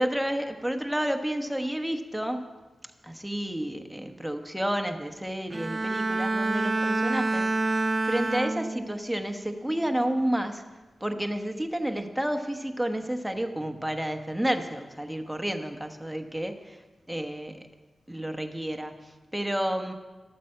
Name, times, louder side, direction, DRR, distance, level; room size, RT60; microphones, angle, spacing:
voice 1, 0.0-2.5 3.0-10.6 11.0-16.8 17.1-17.7 18.1-19.9, right 1 dB, 5° right, 6 dB, 1.1 m, -30 dB
Bowed string instrument, 5.5-9.1 9.5-9.9, right 2 dB, 30° right, 0.5 m, -28 dB
13.0 x 8.9 x 7.6 m, 1.3 s
wide cardioid pair, 115°, 0 cm